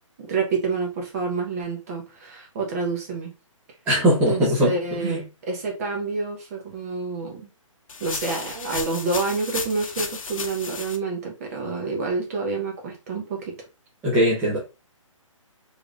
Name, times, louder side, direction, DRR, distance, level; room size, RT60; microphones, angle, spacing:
voice 1, 0.2-3.3 4.3-7.5 8.0-13.5, right 4 dB, 30° right, 0 dB, 1.1 m, -28 dB
voice 2, 3.9-4.7 5.0-5.2 14.0-14.6, equal, 10° right, -7 dB, 0.8 m, -20 dB
sound 1, 7.9-11.0, left 5 dB, 80° left, 0.9 m, -33 dB
4.6 x 3.4 x 2.5 m, 0.29 s
hypercardioid pair, 165°, 17 cm